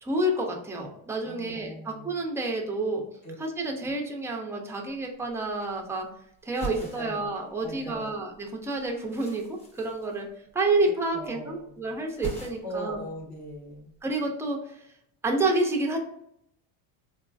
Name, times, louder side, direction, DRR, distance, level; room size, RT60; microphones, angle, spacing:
voice 1, 0.0-3.0 3.4-6.1 6.4-10.3 10.5-13.0 14.0-14.8 15.2-16.0, right 2 dB, 5° right, 0 dB, 0.4 m, -29 dB
voice 2, 1.2-2.1 3.2-3.3 6.7-7.2 7.6-8.2 11.1-11.9 12.6-13.9, right 1 dB, 45° left, 0 dB, 1.1 m, -40 dB
sound 1, 4.9-5.0 5.2-6.1 6.4-8.0 8.3-10.8 11.1-11.6 11.9-12.9 13.2-14.0, right 3 dB, 15° left, 0.7 m, -42 dB
3.8 x 2.4 x 2.3 m, 0.75 s
cardioid pair, 140°, 40 cm